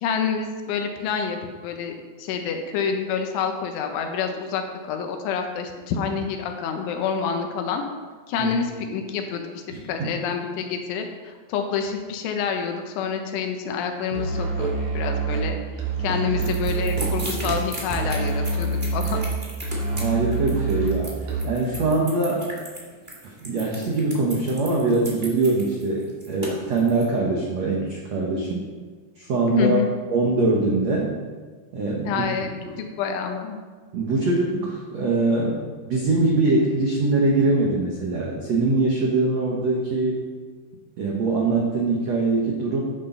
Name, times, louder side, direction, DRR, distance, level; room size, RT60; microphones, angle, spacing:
voice 1, 0.0-7.8 8.3-15.6 16.0-19.2 29.5-29.9 32.1-32.5 32.8-33.6, left 6 dB, 85° left, 5 dB, 3.6 m, -28 dB
voice 2, 9.7-10.1 16.1-16.2 19.9-22.5 23.2-28.7 29.2-29.8 30.1-31.1 31.7-32.2 32.6-32.8 33.9-40.2 41.0-42.8, right 3 dB, 85° right, -2 dB, 1.5 m, -23 dB
Musical instrument, 14.1-21.7, right 4 dB, 55° right, 2.8 m, -27 dB
sound 1, 16.4-27.0, right 1 dB, 40° right, 0.7 m, -35 dB
13.5 x 10.0 x 4.0 m, 1.5 s
omnidirectional pair, 5.3 m